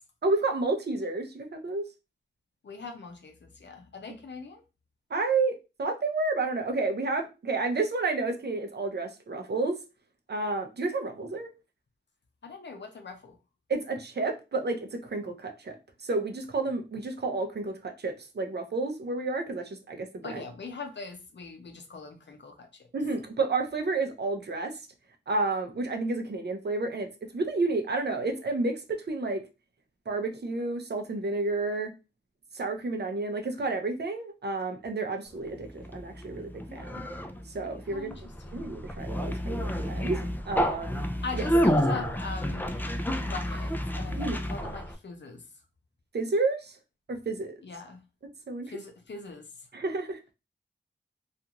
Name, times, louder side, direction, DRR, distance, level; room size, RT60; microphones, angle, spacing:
voice 1, 0.2-1.9 5.1-9.8 10.3-11.5 13.7-20.4 22.9-24.8 25.3-29.5 30.1-31.9 32.5-37.0 37.5-38.1 38.5-41.1 41.3-41.4 44.2-44.4 46.1-46.8 47.1-47.6 48.5-48.7 49.7-50.3, right 3 dB, 65° right, 5 dB, 0.6 m, -30 dB
voice 2, 2.6-4.6 12.4-13.4 20.2-22.9 37.9-38.6 41.2-45.5 47.6-48.0 48.6-49.7, left 4 dB, 70° left, 5 dB, 0.6 m, -41 dB
Conversation, 35.5-44.9, equal, 10° left, 0.4 m, -30 dB
2.4 x 2.4 x 2.8 m, 0.28 s
wide cardioid pair, 60°, 19 cm